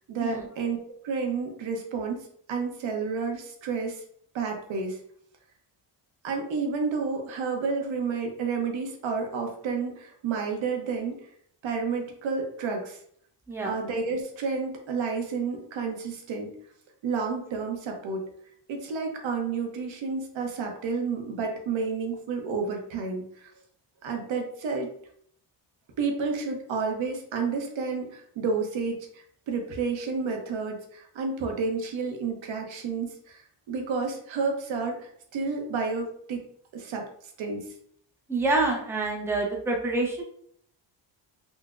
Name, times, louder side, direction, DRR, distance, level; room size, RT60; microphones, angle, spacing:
voice 1, 0.1-0.8 1.0-4.0 4.3-5.0 6.2-11.1 11.6-13.0 13.6-16.5 17.0-18.2 18.7-23.5 24.0-24.9 26.0-33.4 33.7-36.4 36.7-37.0 37.4-37.7, right 4 dB, 80° right, 2 dB, 0.8 m, -30 dB
voice 2, 38.3-40.2, right 2 dB, 5° right, -1 dB, 0.5 m, -27 dB
3.8 x 2.1 x 2.4 m, 0.65 s
cardioid pair, 105°, 46 cm